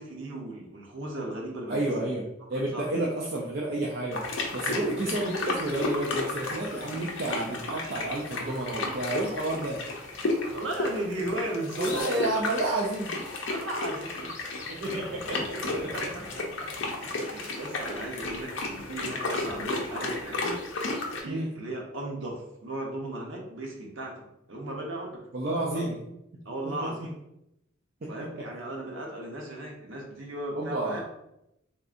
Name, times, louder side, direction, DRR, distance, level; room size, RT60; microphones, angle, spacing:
voice 1, 0.0-2.3 2.5-2.9 4.7-5.1 10.5-12.3 13.5-14.6 14.9-15.0 15.3-16.4 17.0-20.6 21.2-25.2 25.5-25.9 26.4-27.1 28.1-31.0, right 1 dB, 65° right, -1 dB, 0.7 m, -36 dB
voice 2, 1.7-2.2 2.5-4.2 4.5-9.8 11.8-13.2 14.7-15.5 21.3-21.5 25.3-26.0 26.8-26.9 30.6-31.0, right 2 dB, 45° right, -3 dB, 0.4 m, -30 dB
sound 1, 4.1-21.2, left 2 dB, 60° left, 0.5 m, -33 dB
3.6 x 2.6 x 2.4 m, 0.84 s
head